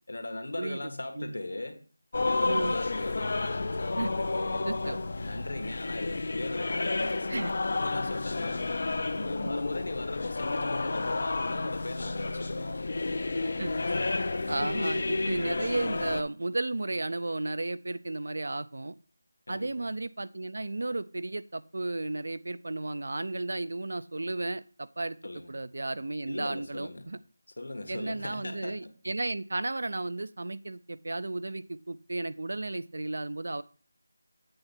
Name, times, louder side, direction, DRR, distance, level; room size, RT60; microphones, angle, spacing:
voice 1, 0.1-1.8 2.2-3.6 4.1-8.7 9.1-14.5 19.5-19.7 25.2-25.5 26.3-27.1 27.6-28.9, left 2 dB, 70° left, 6 dB, 1.3 m, -39 dB
sound 1, 2.1-16.2, left 3 dB, 40° left, 0.4 m, -31 dB
voice 2, 2.4-2.7 3.9-4.1 4.7-5.0 7.3-7.5 9.4-9.5 13.6-13.7 14.5-18.9 19.5-25.2 25.5-27.2 27.9-33.6, right 2 dB, 60° right, 15 dB, 0.4 m, -33 dB
7.8 x 3.6 x 5.5 m, 0.39 s
figure-of-eight pair, 175°, 0 cm